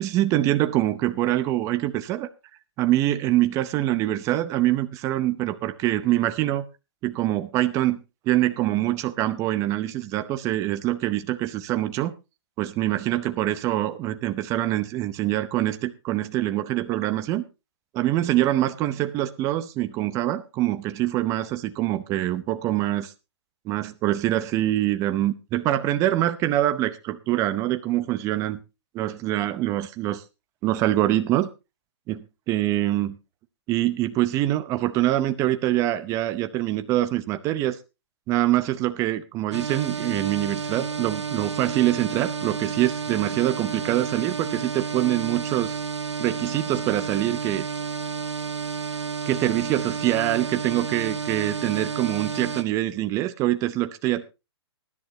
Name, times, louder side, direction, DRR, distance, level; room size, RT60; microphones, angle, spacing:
voice 1, 0.0-2.3 2.8-6.6 7.0-12.1 12.6-17.4 17.9-23.1 23.7-28.6 28.9-30.2 30.6-31.5 32.1-33.2 33.7-37.8 38.3-45.8 46.2-47.7 49.3-54.2, right 14 dB, 20° right, 0.7 m, -24 dB
sound 1, 39.5-52.6, right 5 dB, 85° right, 1.6 m, -31 dB
19.5 x 11.0 x 2.8 m
hypercardioid pair, 140°, 14 cm